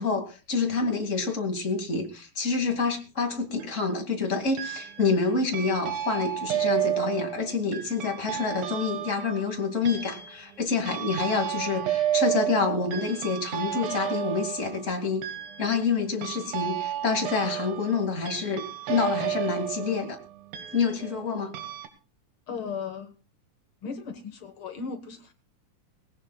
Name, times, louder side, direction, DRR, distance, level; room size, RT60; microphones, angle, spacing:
voice 1, 0.0-15.2 15.6-18.6 18.9-20.2 20.7-21.5, left 4 dB, 25° left, 4 dB, 2.1 m, -27 dB
sound 1, 3.3-3.8 4.6-5.2 5.5-21.3 21.5-21.9, right 11 dB, 85° right, 3.3 m, -32 dB
voice 2, 22.5-23.1 23.8-25.3, left 5 dB, 55° left, 7 dB, 1.6 m, -36 dB
20.0 x 17.5 x 2.3 m, 0.33 s
omnidirectional pair, 4.0 m